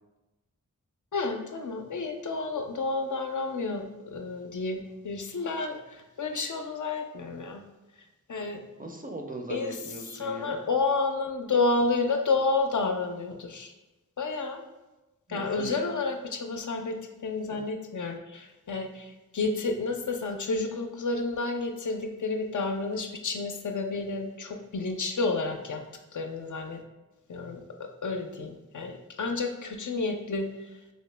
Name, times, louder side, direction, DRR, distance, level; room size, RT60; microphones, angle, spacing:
voice 1, 1.1-7.6 8.3-8.6 9.5-9.8 10.1-13.7 14.2-14.6 15.3-25.8 26.1-26.8 27.3-30.5, left 3 dB, 60° left, 4 dB, 0.4 m, -30 dB
voice 2, 8.8-10.6 15.3-15.8 17.5-17.6, right 1 dB, 25° right, 2 dB, 0.4 m, -39 dB
2.8 x 2.8 x 3.2 m, 1.1 s
wide cardioid pair, 40°, 34 cm